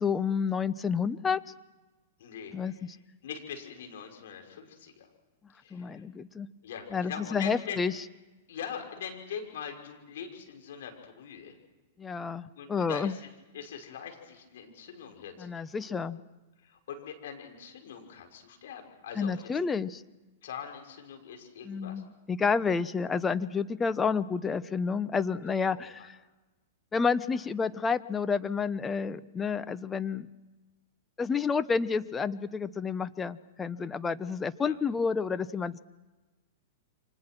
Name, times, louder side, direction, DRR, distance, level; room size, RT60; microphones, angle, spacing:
voice 1, 0.0-1.4 2.5-3.0 5.7-6.5 6.9-7.9 12.0-13.2 15.4-16.2 19.2-20.0 21.6-26.2 26.9-30.3 31.2-35.8, left 5 dB, 15° left, 13 dB, 1.0 m, -30 dB
voice 2, 2.2-2.7 3.2-5.1 5.6-6.0 6.6-7.8 8.5-11.6 12.2-15.5 15.9-16.0 16.6-19.5 20.4-22.0 25.7-26.1 34.6-34.8, left 7 dB, 70° left, 3 dB, 5.9 m, -42 dB
29.0 x 25.5 x 6.2 m, 1.2 s
hypercardioid pair, 115°, 0 cm